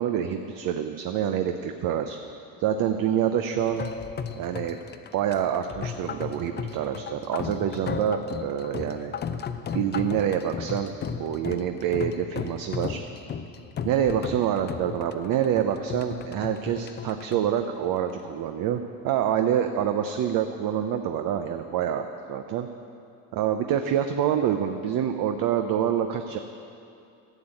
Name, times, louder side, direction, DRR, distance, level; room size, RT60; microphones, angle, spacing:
voice 1, 0.0-2.2 2.6-3.8 4.4-4.8 5.1-9.2 9.7-10.9 11.2-13.0 13.8-22.7 23.3-26.4, right 9 dB, 50° right, 7 dB, 0.7 m, -26 dB
sound 1, 3.6-18.4, left 7 dB, 25° left, 0.5 m, -35 dB
11.5 x 7.2 x 8.9 m, 2.6 s
supercardioid pair, 105°, 42 cm